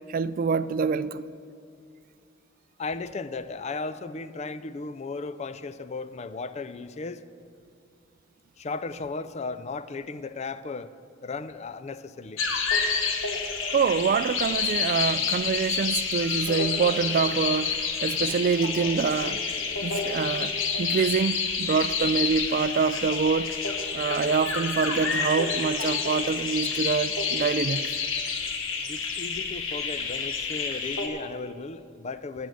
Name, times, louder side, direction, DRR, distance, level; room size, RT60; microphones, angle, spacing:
voice 1, 0.1-1.3 13.7-19.4 19.8-20.5 20.8-23.5 23.9-27.8, right 5 dB, 45° right, 0.3 m, -26 dB
voice 2, 2.8-7.2 8.6-10.9 11.2-12.4 28.9-32.5, left 3 dB, 35° left, 0.4 m, -35 dB
sound 1, 12.4-31.1, left 5 dB, 80° left, 1.2 m, -29 dB
13.5 x 6.2 x 7.8 m
head